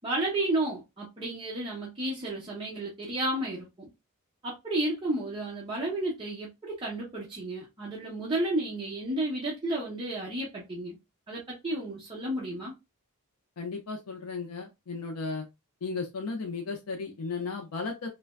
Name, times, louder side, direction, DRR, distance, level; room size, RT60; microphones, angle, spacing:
voice 1, 0.0-3.9 4.4-11.0 11.3-12.7, right 1 dB, 20° right, 0.8 m, -32 dB
voice 2, 13.6-15.5 15.8-18.1, left 4 dB, 75° left, 0.4 m, -35 dB
3.2 x 2.2 x 2.2 m
head